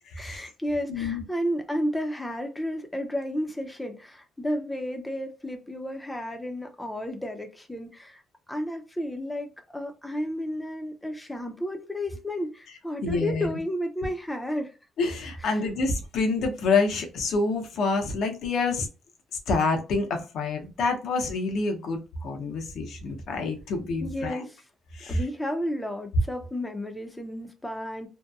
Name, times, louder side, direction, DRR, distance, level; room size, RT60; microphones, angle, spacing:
voice 1, 0.2-8.2 8.5-14.7 15.4-15.6 24.0-24.6 25.1-28.1, equal, 10° left, 0.5 m, -32 dB
voice 2, 0.9-1.2 13.0-13.5 15.0-18.9 19.5-24.4 24.9-25.2, left 3 dB, 75° left, 0.6 m, -27 dB
2.7 x 2.1 x 2.3 m
cardioid pair, 90°, 0 cm